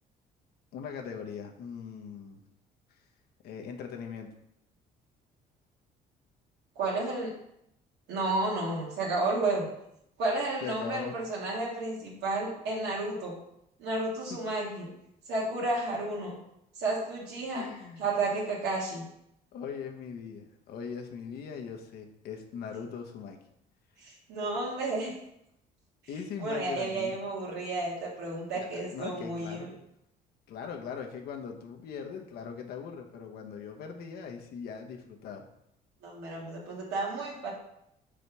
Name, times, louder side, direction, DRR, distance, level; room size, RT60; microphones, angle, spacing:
voice 1, 0.7-2.4 3.4-4.3 10.6-11.1 17.6-18.1 19.5-23.4 26.1-27.1 28.5-29.7 30.5-35.4, left 6 dB, 70° left, 3 dB, 1.1 m, -40 dB
voice 2, 6.8-7.3 8.1-9.7 10.2-13.3 13.8-14.9 15.3-16.3 16.8-17.7 18.0-19.0 24.0-25.1 26.4-29.7 36.0-37.5, right 2 dB, 80° right, -5 dB, 2.0 m, -32 dB
5.1 x 4.1 x 6.0 m, 0.78 s
cardioid pair, 110°, 17 cm